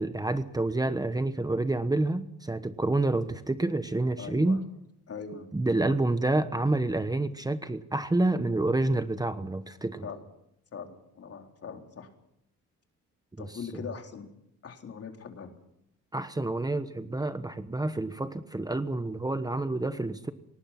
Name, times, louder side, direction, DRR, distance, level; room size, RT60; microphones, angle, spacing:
voice 1, 0.0-4.6 5.5-10.1 13.4-13.5 16.1-20.3, right 2 dB, 10° right, 11 dB, 1.1 m, -28 dB
voice 2, 4.2-4.6 5.1-5.5 5.8-6.0 10.0-10.3 10.7-12.1 13.4-14.3 14.6-15.5, left 6 dB, 50° left, 3 dB, 3.9 m, -41 dB
23.5 x 19.0 x 6.0 m, 0.80 s
cardioid pair, 90°, 30 cm